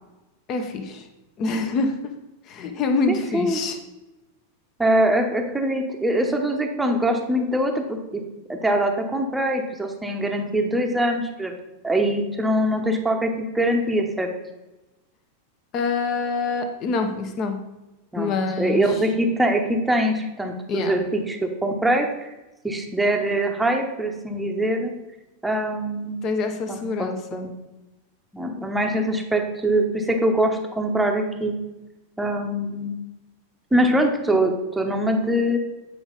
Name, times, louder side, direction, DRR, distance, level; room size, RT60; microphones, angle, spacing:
voice 1, 0.5-1.1 1.4-1.9 2.5-3.8 15.7-17.6 18.2-18.8 20.7-21.0 26.2-27.4, left 4 dB, 35° left, 6 dB, 1.0 m, -25 dB
voice 2, 3.1-3.6 4.8-8.2 8.5-11.5 11.8-14.3 18.1-22.3 22.6-24.9 25.4-26.2 26.7-27.5 28.3-31.5 32.2-33.0 33.7-35.6, right 1 dB, 5° right, 3 dB, 1.0 m, -23 dB
8.6 x 5.0 x 4.0 m, 1.0 s
figure-of-eight pair, 90°, 0 cm